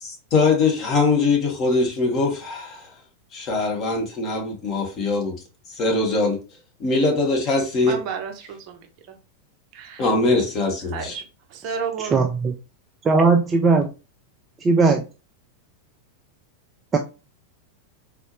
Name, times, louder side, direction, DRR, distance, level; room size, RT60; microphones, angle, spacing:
voice 1, 0.0-2.9 3.3-5.3 5.7-6.4 6.8-8.0 10.0-11.1, left 3 dB, 30° left, 1 dB, 1.4 m, -22 dB
voice 2, 7.8-9.2 9.7-10.1 10.9-11.2 11.5-12.3, right 6 dB, 40° right, 3 dB, 0.8 m, -32 dB
voice 3, 12.1-12.5 13.0-13.9 14.6-15.0 16.9-17.0, right 4 dB, 20° right, 4 dB, 0.4 m, -18 dB
4.1 x 2.9 x 3.0 m, 0.31 s
figure-of-eight pair, 90°, 0 cm